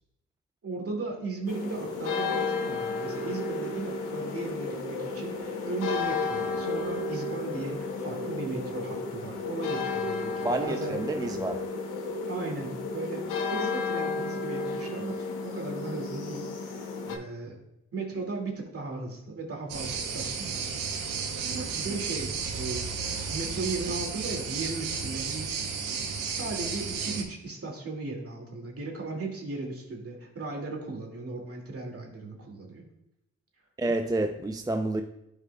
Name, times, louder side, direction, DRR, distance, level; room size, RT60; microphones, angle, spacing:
voice 1, 0.6-11.0 12.2-17.6 17.9-20.8 21.7-32.8, right 3 dB, 45° right, 2.3 m, -37 dB
sound 1, 1.5-17.2, left 3 dB, 80° left, 1.0 m, -32 dB
voice 2, 10.4-11.7 33.8-35.0, right 2 dB, 10° right, 0.5 m, -29 dB
sound 2, 19.7-27.2, right 5 dB, 85° right, 0.9 m, -33 dB
12.0 x 4.9 x 2.3 m
supercardioid pair, 45°, 31 cm